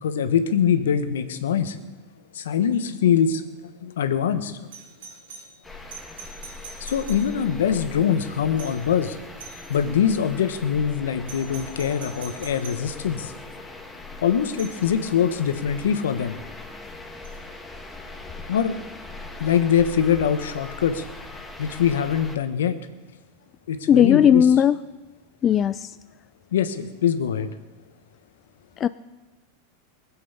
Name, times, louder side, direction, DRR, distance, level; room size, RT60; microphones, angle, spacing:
voice 1, 0.0-1.8 2.3-3.5 3.8-4.7 6.8-9.2 9.7-13.3 14.2-16.4 18.5-18.7 19.4-21.0 21.6-22.8 23.7-24.5 26.5-27.5, left 8 dB, 80° left, 9 dB, 1.3 m, -23 dB
Doorbell, 4.7-7.7 8.6-9.0 9.4-9.9 11.3-12.9 14.6-14.9 17.2-17.4, right 4 dB, 75° right, 3.1 m, -43 dB
sound 1, 5.6-22.4, left 2 dB, 10° left, 1.8 m, -40 dB
voice 2, 23.9-24.8 25.4-25.9 28.8-28.9, left 9 dB, 30° left, 13 dB, 0.4 m, -16 dB
19.5 x 7.9 x 8.2 m, 1.2 s
hypercardioid pair, 105°, 0 cm